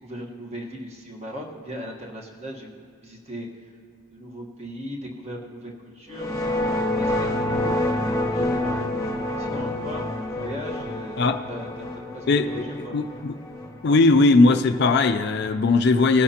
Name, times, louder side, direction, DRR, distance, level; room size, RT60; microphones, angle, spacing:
voice 1, 0.0-3.5 4.1-6.3 7.0-9.0 9.4-11.2 11.5-13.0, equal, 30° right, -1 dB, 1.3 m, -38 dB
sound 1, 6.1-14.8, left 1 dB, 15° left, 0.9 m, -28 dB
voice 2, 12.3-13.3 13.8-16.2, left 3 dB, 50° left, 8 dB, 0.4 m, -19 dB
20.0 x 10.5 x 2.9 m, 2.1 s
head